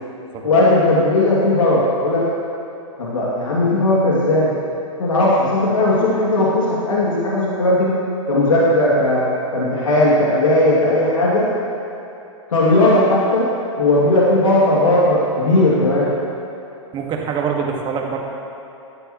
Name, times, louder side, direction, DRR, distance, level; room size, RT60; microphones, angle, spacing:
voice 1, 0.4-2.3 3.0-4.5 5.0-7.9 8.3-9.3 9.5-11.5 12.5-13.5 13.8-16.1, left 1 dB, 80° left, -6 dB, 2.6 m, -16 dB
voice 2, 16.9-18.2, right 6 dB, 30° right, 1 dB, 1.8 m, -24 dB
17.0 x 13.0 x 3.2 m, 3.0 s
hypercardioid pair, 120°, 17 cm